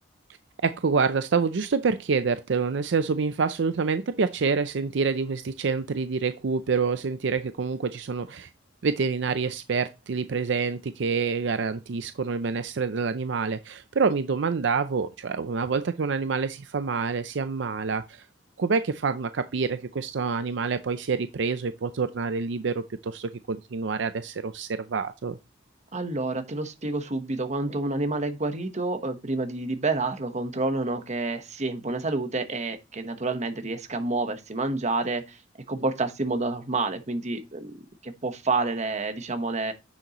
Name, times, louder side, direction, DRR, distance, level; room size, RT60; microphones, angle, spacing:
voice 1, 0.6-8.5 8.8-18.2 18.6-25.4, right 5 dB, 70° right, 0.5 m, -27 dB
voice 2, 25.9-35.4 35.7-37.7 38.0-39.7, right 3 dB, 40° right, 1.1 m, -29 dB
9.8 x 6.7 x 3.0 m
head